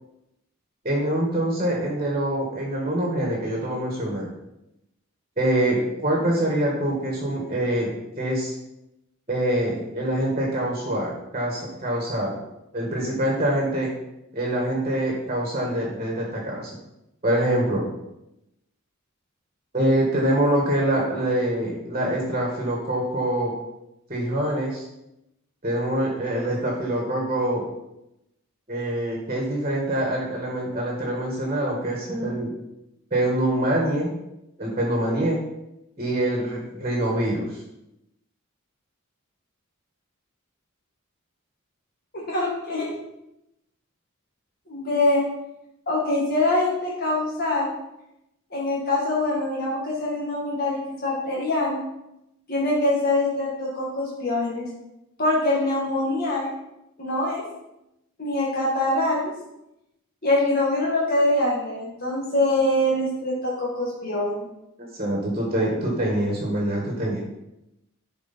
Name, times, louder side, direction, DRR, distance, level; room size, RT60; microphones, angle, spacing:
voice 1, 0.8-4.3 5.4-8.5 9.3-12.3 12.7-13.9 14.3-16.7 17.2-17.8 19.7-23.5 24.1-24.9 25.6-27.6 28.7-32.5 33.1-34.1 34.6-35.4 36.0-37.6 64.8-67.2, right 1 dB, 30° right, -2 dB, 1.8 m, -25 dB
voice 2, 42.1-42.9 44.7-45.2 45.9-47.7 48.5-51.8 52.5-54.7 55.2-56.5 57.0-57.4 58.2-59.3 60.2-64.5, left 2 dB, 45° left, -4 dB, 1.6 m, -24 dB
11.5 x 4.7 x 4.4 m, 0.88 s
head